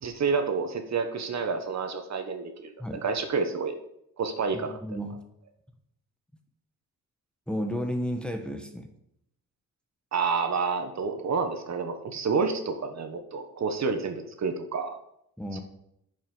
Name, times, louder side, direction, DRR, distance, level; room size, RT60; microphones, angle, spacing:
voice 1, 0.0-2.7 3.0-3.7 4.2-4.8 10.1-15.0 15.5-15.6, right 5 dB, 50° right, 7 dB, 1.1 m, -29 dB
voice 2, 4.5-5.2 7.5-8.9 15.4-15.6, equal, 5° left, 4 dB, 1.0 m, -32 dB
10.5 x 5.7 x 5.4 m, 0.78 s
wide cardioid pair, 145°, 35 cm